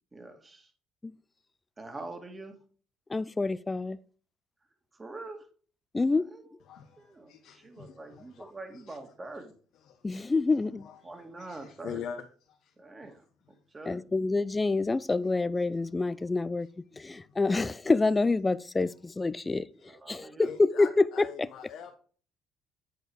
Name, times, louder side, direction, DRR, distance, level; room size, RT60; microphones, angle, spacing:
voice 1, 0.1-0.7 1.8-2.5 4.9-5.5 6.3-6.4 7.0-9.5 11.0-12.0 12.8-13.2 13.7-14.0 19.9-20.5, right 2 dB, 25° right, 2.2 m, -44 dB
voice 2, 3.1-4.0 5.9-6.3 10.0-10.9 13.9-21.5, left 3 dB, 20° left, 0.4 m, -27 dB
voice 3, 6.7-8.4 8.7-9.0 9.9-10.2 10.8-12.7 17.1-17.2 20.4-21.9, left 8 dB, 70° left, 1.0 m, -44 dB
8.9 x 4.7 x 4.9 m
supercardioid pair, 70°, 0 cm